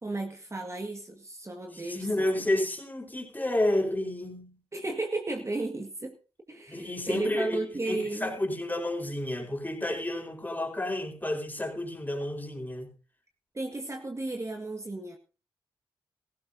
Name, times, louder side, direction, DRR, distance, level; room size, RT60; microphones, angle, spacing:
voice 1, 0.0-2.3 4.7-6.1 6.5-8.3 13.5-15.2, right 2 dB, 30° right, 1.9 m, -34 dB
voice 2, 1.7-4.6 6.7-7.6 7.8-12.9, left 1 dB, 15° left, 4.6 m, -30 dB
17.0 x 15.0 x 2.8 m
supercardioid pair, 45°, 10 cm